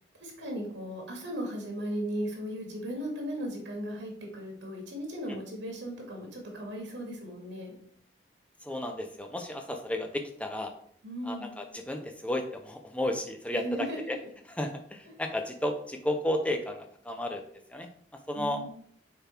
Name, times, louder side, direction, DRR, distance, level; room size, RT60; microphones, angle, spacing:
voice 1, 0.2-7.7 11.0-11.6 13.5-14.0 18.3-18.7, equal, 90° right, 0 dB, 2.2 m, -36 dB
voice 2, 8.6-10.7 11.2-13.6 14.1-14.2 14.6-17.4 17.7-17.9 18.3-18.6, left 1 dB, 5° left, 5 dB, 0.7 m, -33 dB
6.8 x 4.0 x 4.5 m, 0.63 s
head